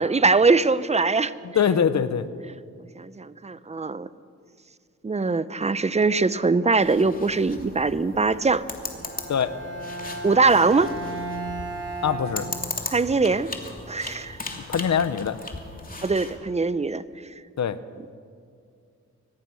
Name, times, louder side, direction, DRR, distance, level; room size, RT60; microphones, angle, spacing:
voice 1, 0.0-1.3 3.0-4.1 5.0-8.7 10.2-10.9 12.9-13.5 13.9-14.4 16.0-17.0, right 4 dB, 20° right, 15 dB, 0.7 m, -22 dB
voice 2, 1.4-2.3 9.3-9.5 12.0-12.5 14.7-15.4 17.6-17.8, left 7 dB, 70° left, 13 dB, 1.0 m, -23 dB
sound 1, 6.8-16.4, left 2 dB, 30° left, 2.9 m, -37 dB
Bowed string instrument, 8.9-13.1, right 1 dB, 45° right, 5.0 m, -35 dB
24.0 x 19.5 x 6.3 m, 2.3 s
cardioid pair, 85°, 29 cm